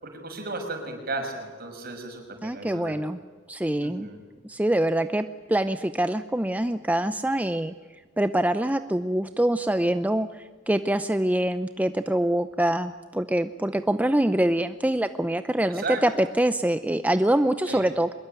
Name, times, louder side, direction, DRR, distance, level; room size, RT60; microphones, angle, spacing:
voice 1, 0.0-3.0 3.8-4.2 15.7-16.0 17.7-17.8, right 3 dB, 50° right, 4 dB, 6.1 m, -34 dB
voice 2, 2.4-3.2 3.5-4.1 4.4-7.7 8.2-18.1, right 1 dB, 10° right, 10 dB, 0.6 m, -25 dB
24.0 x 21.5 x 9.0 m, 1.4 s
head